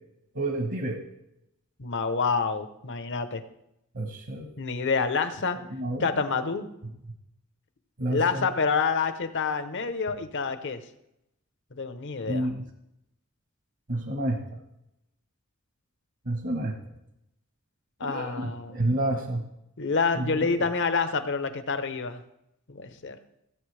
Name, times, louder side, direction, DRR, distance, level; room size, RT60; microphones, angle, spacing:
voice 1, 0.3-1.0 3.9-4.5 5.7-6.1 8.0-8.5 12.3-12.6 13.9-14.6 16.2-16.8 18.0-19.4 20.1-20.3, right 1 dB, 60° right, 3 dB, 1.3 m, -29 dB
voice 2, 1.8-3.4 4.6-5.6 6.0-6.7 8.1-10.8 11.7-12.5 18.0-18.8 19.8-22.2 22.7-23.2, left 5 dB, 60° left, 10 dB, 0.9 m, -27 dB
16.5 x 8.0 x 3.4 m, 0.83 s
head